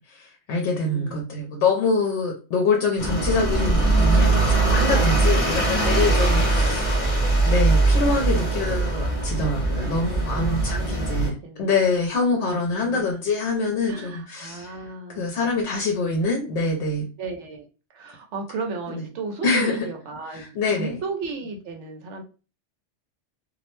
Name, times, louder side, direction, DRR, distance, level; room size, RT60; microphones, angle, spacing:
voice 1, 0.0-14.8 15.2-17.1 18.9-19.0 19.4-19.9 20.3-21.0, left 3 dB, 75° left, 1 dB, 0.9 m, -25 dB
voice 2, 0.8-1.5 5.1-6.9 8.4-8.7 9.8-11.8 12.6-13.1 13.9-15.5 17.2-17.6 17.9-22.2, right 4 dB, 80° right, 3 dB, 1.0 m, -36 dB
sound 1, 3.0-11.3, right 2 dB, 35° left, 0.8 m, -21 dB
2.5 x 2.0 x 3.0 m, 0.34 s
omnidirectional pair, 1.2 m